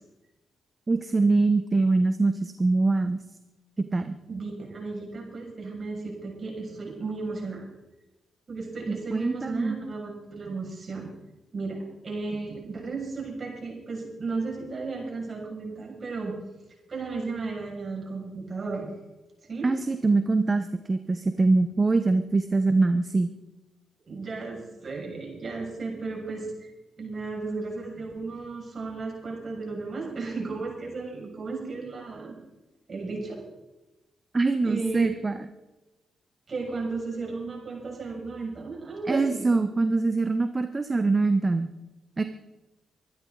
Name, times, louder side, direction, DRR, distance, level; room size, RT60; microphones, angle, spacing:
voice 1, 0.9-3.2 3.9-4.2 8.9-9.8 19.6-23.3 34.3-35.4 39.1-41.7 42.2-42.3, right 3 dB, 35° right, 9 dB, 1.1 m, -23 dB
voice 2, 4.3-7.7 8.5-11.1 11.5-11.8 12.0-16.3 16.9-18.9 19.5-19.7 24.0-26.5 27.0-32.3 32.9-33.4 34.6-35.1 36.5-39.5, right 3 dB, 50° right, 0 dB, 6.7 m, -34 dB
24.0 x 12.0 x 4.1 m, 1.0 s
supercardioid pair, 45°, 0 cm